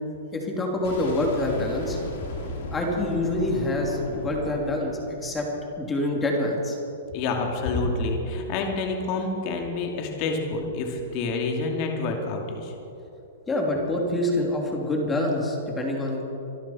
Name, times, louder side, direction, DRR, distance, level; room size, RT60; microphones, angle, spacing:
voice 1, 0.3-2.0 2.7-5.5 5.8-6.8 13.5-16.2, left 1 dB, 15° left, 0 dB, 3.0 m, -26 dB
Boom, 0.8-5.7, left 2 dB, 65° left, 3.8 m, -37 dB
voice 2, 7.1-12.7, left 3 dB, 40° left, 2 dB, 2.6 m, -28 dB
25.0 x 12.5 x 4.4 m, 2.9 s
hypercardioid pair, 140°, 0 cm